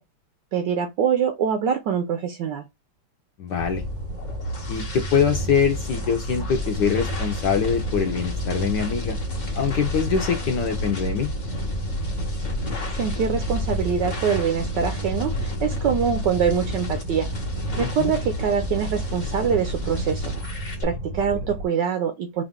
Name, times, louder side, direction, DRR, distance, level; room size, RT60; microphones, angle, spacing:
voice 1, 0.5-2.6 12.9-17.3 17.7-20.2 20.8-22.4, right 7 dB, 75° right, 1.0 m, -24 dB
voice 2, 3.4-3.8 4.7-9.2 9.5-11.3 17.8-18.1, left 6 dB, 70° left, 1.0 m, -24 dB
sound 1, 3.6-21.7, equal, 30° right, 0.6 m, -31 dB
sound 2, 3.9-20.8, left 1 dB, 40° left, 0.6 m, -33 dB
4.6 x 2.4 x 3.5 m
omnidirectional pair, 2.4 m